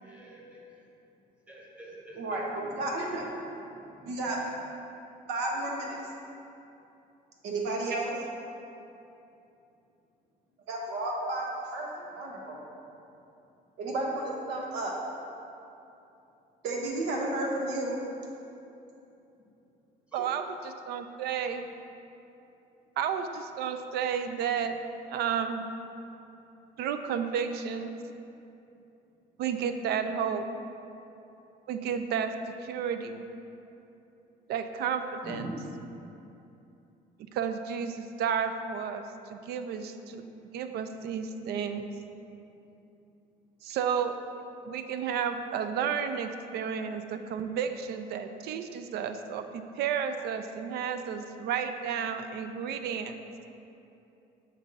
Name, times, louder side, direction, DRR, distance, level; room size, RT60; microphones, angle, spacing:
voice 1, 0.0-0.9 1.5-4.2 12.8-13.0 19.4-19.5 20.1-20.3 35.2-35.5, equal, 10° right, -4 dB, 1.3 m, -47 dB
voice 2, 2.1-3.3 4.0-4.4 5.3-6.0 7.4-8.1 10.7-12.6 13.8-15.0 16.6-17.9, right 2 dB, 90° right, -1 dB, 1.0 m, -32 dB
voice 3, 20.9-21.7 23.0-24.8 25.1-25.7 26.8-27.9 29.4-30.5 31.7-32.4 32.6-33.2 34.5-35.4 37.3-40.2 40.5-41.9 43.6-44.2 44.7-53.2, right 7 dB, 70° right, 8 dB, 0.4 m, -32 dB
7.4 x 2.6 x 5.3 m, 2.8 s
cardioid pair, 110°, 17 cm